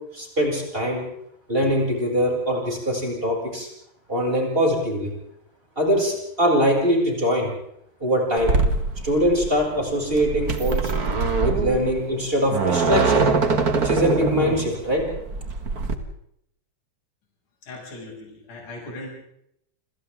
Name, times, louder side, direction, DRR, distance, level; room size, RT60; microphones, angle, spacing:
voice 1, 0.1-1.0 1.5-3.7 4.1-5.1 5.8-7.5 8.0-8.6 9.0-10.9 11.4-13.2 13.7-15.0, equal, 10° right, -1 dB, 7.0 m, -22 dB
sound 1, 8.4-15.9, right 4 dB, 90° right, 0.8 m, -23 dB
voice 2, 17.6-19.1, left 2 dB, 45° left, -2 dB, 8.0 m, -38 dB
29.0 x 27.5 x 3.7 m, 0.75 s
omnidirectional pair, 5.0 m